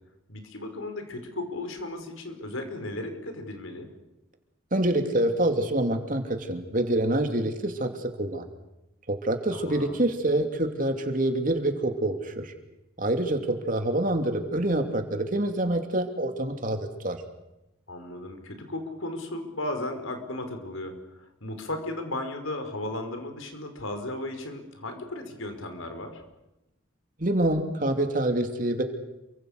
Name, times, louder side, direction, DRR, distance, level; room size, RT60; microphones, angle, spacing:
voice 1, 0.3-3.9 9.5-10.0 17.9-26.2, left 1 dB, 85° left, 6 dB, 5.0 m, -35 dB
voice 2, 4.7-8.4 9.1-12.5 13.0-17.2 27.2-28.8, right 1 dB, 40° right, 6 dB, 2.9 m, -26 dB
28.5 x 24.5 x 6.6 m, 0.95 s
head